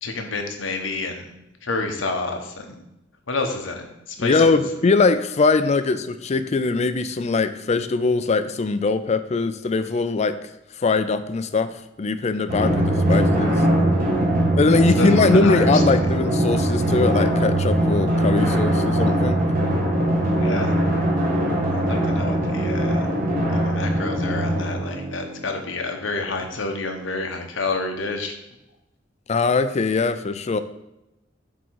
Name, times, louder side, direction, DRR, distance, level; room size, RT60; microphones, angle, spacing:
voice 1, 0.0-1.3 1.6-2.8 3.3-4.6 15.0-15.8 20.3-20.7 21.7-23.1 23.5-28.3, left 3 dB, 90° left, 4 dB, 1.1 m, -29 dB
voice 2, 4.2-10.4 10.8-13.6 14.6-19.4 29.3-30.6, left 4 dB, 35° left, 11 dB, 0.4 m, -21 dB
Drum, 12.5-25.6, right 1 dB, 50° right, 1.5 m, -21 dB
7.9 x 3.7 x 4.6 m, 0.90 s
head